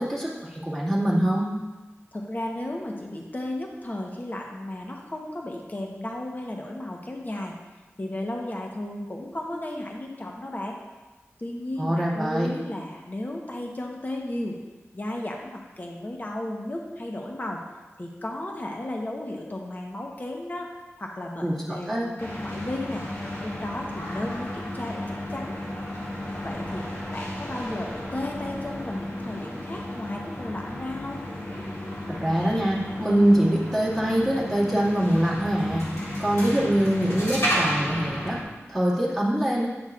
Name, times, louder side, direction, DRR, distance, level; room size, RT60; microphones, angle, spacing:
voice 1, 0.0-1.5 11.8-12.5 21.4-22.1 32.1-35.8 36.2-38.4 38.7-39.7, right 1 dB, 5° left, -7 dB, 2.0 m, -24 dB
voice 2, 2.1-7.5 8.0-10.8 11.4-14.6 14.9-17.6 18.0-20.7 21.0-23.0 23.4-25.6 26.4-26.9 27.1-31.2, left 1 dB, 35° left, 0 dB, 0.9 m, -34 dB
sound 1, 22.2-38.4, equal, 65° left, 2.1 m, -33 dB
9.7 x 6.4 x 2.4 m, 1.2 s
wide cardioid pair, 55°, 5 cm